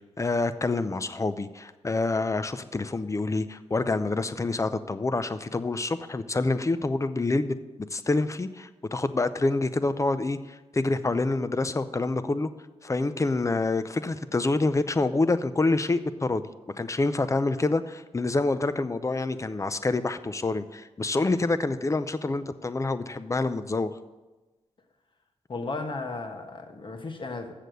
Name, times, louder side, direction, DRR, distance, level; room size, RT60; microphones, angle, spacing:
voice 1, 0.2-7.6 7.9-12.5 12.8-16.4 16.8-23.9, left 3 dB, 25° left, 0.6 m, -27 dB
voice 2, 25.5-27.5, left 3 dB, 45° left, 1.2 m, -35 dB
7.4 x 6.7 x 7.9 m
cardioid pair, 60°, 11 cm